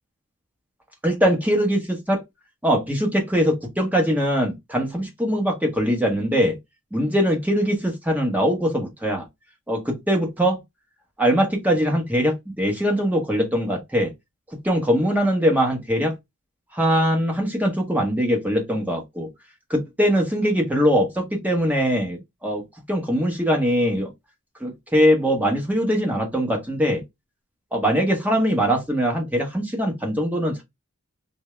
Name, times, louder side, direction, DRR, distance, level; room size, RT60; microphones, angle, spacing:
voice 1, 1.0-2.2 2.6-6.5 6.9-9.2 9.7-10.6 11.2-14.1 14.6-16.1 16.7-19.3 19.7-22.6 22.9-24.1 24.6-27.0 27.7-30.6, equal, 5° right, 1.1 m, -22 dB
3.5 x 2.7 x 3.1 m
head